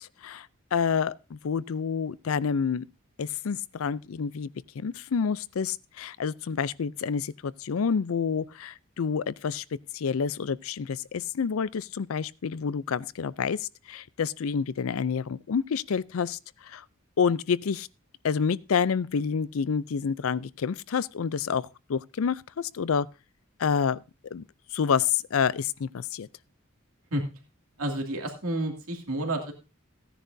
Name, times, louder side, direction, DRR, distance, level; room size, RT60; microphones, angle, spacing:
voice 1, 0.0-2.9 3.2-4.5 4.8-9.6 9.9-16.8 17.2-17.9 18.2-23.1 23.6-24.0 24.3-24.4 24.7-26.3, left 6 dB, 75° left, 0.5 m, -28 dB
voice 2, 27.8-29.5, right 1 dB, 85° right, 2.4 m, -30 dB
16.0 x 10.0 x 2.7 m
head